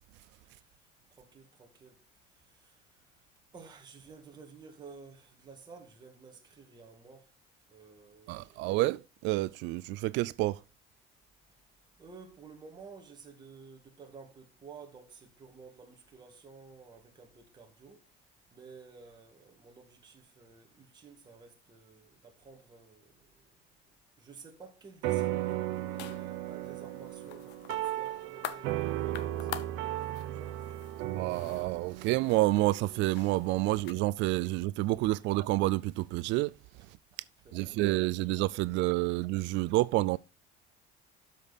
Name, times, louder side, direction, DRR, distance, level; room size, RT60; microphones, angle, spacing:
voice 1, 1.2-2.0 2.5-2.8 3.5-7.3 7.7-8.7 12.0-18.0 18.5-23.5 24.2-29.5 29.9-30.6 35.2-35.3 37.4-37.9, right 5 dB, 20° right, 1.8 m, -53 dB
voice 2, 8.3-10.6 31.1-36.5 37.5-40.2, right 19 dB, 65° right, 0.4 m, -29 dB
sound 1, 25.0-33.7, right 14 dB, 90° right, 1.0 m, -36 dB
sound 2, 25.7-33.9, left 12 dB, 60° left, 0.9 m, -47 dB
12.5 x 5.3 x 4.1 m
cardioid pair, 175°, 20 cm